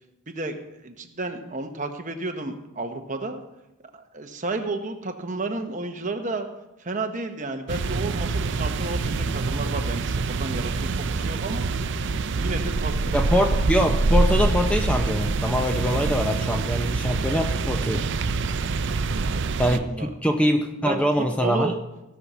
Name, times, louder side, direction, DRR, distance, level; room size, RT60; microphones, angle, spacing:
voice 1, 0.3-0.6 0.8-3.4 3.9-6.5 6.8-11.7 12.4-12.9 13.4-13.5 19.2-20.1 20.9-21.0 21.3-21.8, right 2 dB, 35° right, 6 dB, 1.0 m, -32 dB
sound 1, 7.7-19.8, right 3 dB, 55° right, 0.5 m, -25 dB
voice 2, 13.1-18.0 19.6-21.7, equal, 5° left, 4 dB, 0.5 m, -24 dB
16.5 x 5.6 x 6.1 m, 0.95 s
head